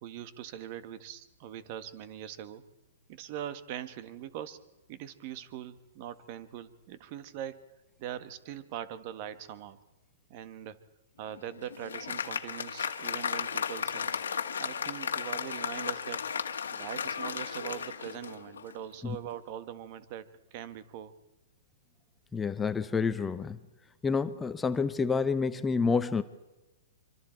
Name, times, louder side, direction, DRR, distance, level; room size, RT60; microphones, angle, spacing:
voice 1, 0.0-2.6 3.1-4.6 4.9-7.7 8.0-9.8 10.3-10.8 11.2-14.2 14.6-16.2 16.7-21.1, right 11 dB, 45° right, 13 dB, 1.5 m, -42 dB
Applause, 11.3-18.8, left 7 dB, 85° left, 1.6 m, -35 dB
voice 2, 22.3-23.6 24.0-26.2, left 5 dB, 10° left, 11 dB, 0.8 m, -28 dB
25.5 x 25.0 x 4.6 m, 1.0 s
hypercardioid pair, 135°, 0 cm